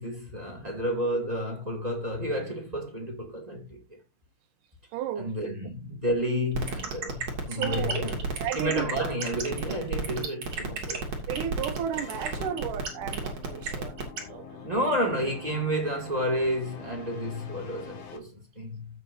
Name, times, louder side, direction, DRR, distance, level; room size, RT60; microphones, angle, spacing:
voice 1, 0.0-3.8 5.2-8.2 8.5-11.0 14.6-18.9, equal, 15° right, 2.3 m, -30 dB
voice 2, 4.9-5.5 7.5-8.0 8.4-8.9 11.3-14.0 14.3-14.7, right 9 dB, 80° right, 2.5 m, -34 dB
sound 1, 6.5-14.2, right 5 dB, 55° right, 3.3 m, -31 dB
sound 2, 11.9-18.2, left 7 dB, 55° left, 2.3 m, -45 dB
15.5 x 6.4 x 2.7 m
omnidirectional pair, 3.7 m